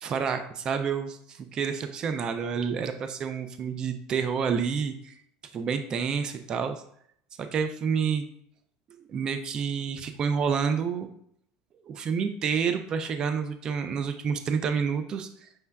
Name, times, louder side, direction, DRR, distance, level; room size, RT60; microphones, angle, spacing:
voice 1, 0.0-5.1 5.5-6.8 7.4-8.3 9.1-11.1 11.8-15.5, right 6 dB, 35° right, 9 dB, 0.4 m, -29 dB
5.7 x 3.2 x 2.2 m, 0.67 s
supercardioid pair, 135°, 2 cm